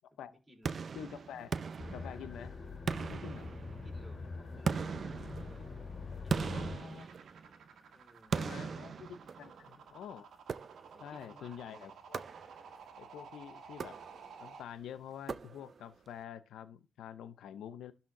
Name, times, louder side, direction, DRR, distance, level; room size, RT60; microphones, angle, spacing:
voice 1, 0.2-1.0 3.7-5.7 6.2-7.1 7.9-8.8 10.9-12.0, equal, 15° right, 4.0 m, -60 dB
sound 1, 0.6-2.5 2.9-4.0 4.7-7.7 8.3-9.7 10.5-11.1 12.1-12.8 13.7-14.5 15.3-15.9, right 5 dB, 50° right, 0.5 m, -39 dB
voice 2, 0.9-1.5 1.9-2.5 3.1-3.5 6.4-7.1 8.3-9.1 9.4-10.3 11.0-12.2 13.0-14.0 14.4-17.9, left 9 dB, 85° left, 0.6 m, -47 dB
sound 2, 1.8-6.8, left 4 dB, 45° left, 2.3 m, -44 dB
sound 3, 6.9-14.6, right 6 dB, 75° right, 1.8 m, -53 dB
12.5 x 4.2 x 3.7 m
cardioid pair, 90°, 0 cm